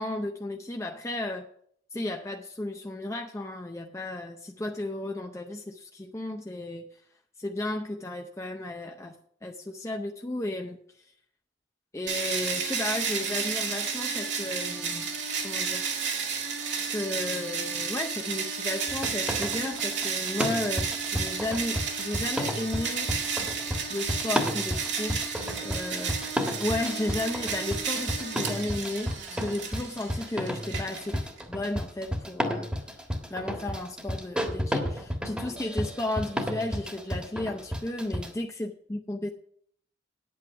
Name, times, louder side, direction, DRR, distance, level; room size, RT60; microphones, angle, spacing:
voice 1, 0.0-1.5 1.9-6.8 7.4-9.1 9.4-10.8 11.9-15.1 15.4-15.9 16.8-23.5 23.9-25.4 25.6-26.1 26.6-29.1 29.4-31.2 31.5-39.3, left 1 dB, 15° left, 3 dB, 0.6 m, -34 dB
sound 1, 12.1-31.4, right 5 dB, 75° right, 2.1 m, -32 dB
sound 2, 18.9-38.3, equal, 5° right, 1.5 m, -32 dB
9.5 x 8.5 x 5.7 m, 0.64 s
head